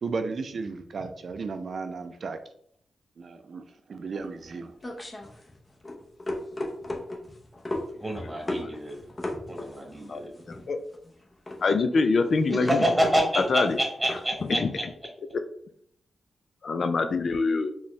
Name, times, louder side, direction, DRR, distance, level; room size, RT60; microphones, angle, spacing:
voice 1, 0.0-2.4 3.2-3.6 3.9-4.7, right 4 dB, 60° right, 8 dB, 0.5 m, -34 dB
sound 1, 4.1-14.5, left 1 dB, 30° left, 0.9 m, -36 dB
voice 2, 8.0-9.0 9.5-10.3 12.5-14.8, equal, 5° right, 0 dB, 1.3 m, -27 dB
voice 3, 11.6-12.8 13.4-13.8 14.5-14.7 16.6-17.7, left 4 dB, 60° left, 9 dB, 0.4 m, -24 dB
4.2 x 2.3 x 3.1 m, 0.66 s
cardioid pair, 60°, 0 cm